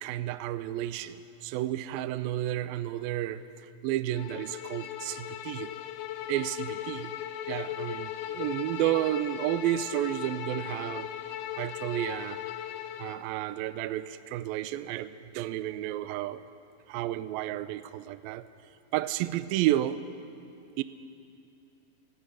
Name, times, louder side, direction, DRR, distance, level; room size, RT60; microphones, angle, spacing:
voice 1, 0.0-5.7 6.3-7.1 7.5-11.1 11.6-12.4 13.0-16.4 16.9-18.5 18.9-20.0 20.8-20.9, right 13 dB, 85° right, 13 dB, 2.1 m, -31 dB
Bowed string instrument, 4.1-13.3, left 11 dB, 85° left, 3.5 m, -38 dB
28.0 x 15.5 x 10.0 m, 2.7 s
omnidirectional pair, 5.1 m